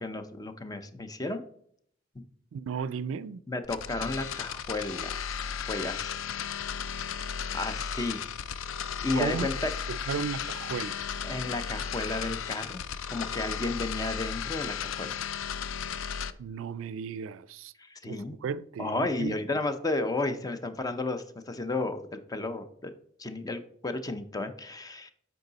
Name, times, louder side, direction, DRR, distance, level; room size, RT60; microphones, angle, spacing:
voice 1, 0.0-1.4 2.1-2.2 3.5-5.2 5.7-6.3 7.5-8.2 9.0-9.7 11.2-12.8 13.1-15.2 17.8-18.4 18.8-22.9 23.2-25.1, left 2 dB, 20° left, 0.5 m, -33 dB
voice 2, 2.5-3.4 9.2-9.5 9.9-11.0 16.4-17.7 18.0-19.3, right 6 dB, 80° right, 0.3 m, -34 dB
sound 1, 3.6-16.3, left 7 dB, 80° left, 0.4 m, -35 dB
8.0 x 4.7 x 4.0 m
head